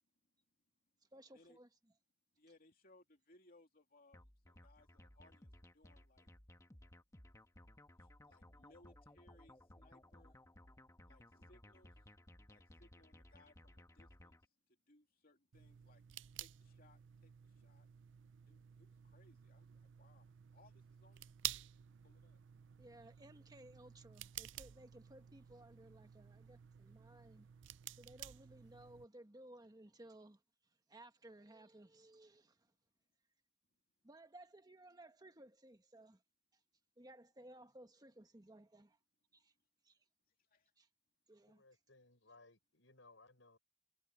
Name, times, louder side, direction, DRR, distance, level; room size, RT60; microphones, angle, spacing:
voice 1, 1.1-1.7 22.8-27.5 28.0-32.7 34.0-36.2 36.5-36.6 37.0-39.0 39.3-39.5 39.8-40.0 40.8-40.9 41.3-41.6, right 1 dB, 20° right, 1.4 m, -59 dB
voice 2, 2.3-6.3 8.0-10.4 11.0-12.2 12.4-16.0 16.3-17.9 18.5-21.7 22.0-22.4 40.3-40.7, left 2 dB, 50° left, 2.8 m, -69 dB
sound 1, 4.1-14.5, left 1 dB, 15° left, 1.2 m, -61 dB
sound 2, 15.5-29.1, right 13 dB, 75° right, 0.5 m, -52 dB
voice 3, 41.5-43.6, left 3 dB, 80° left, 6.6 m, -64 dB
head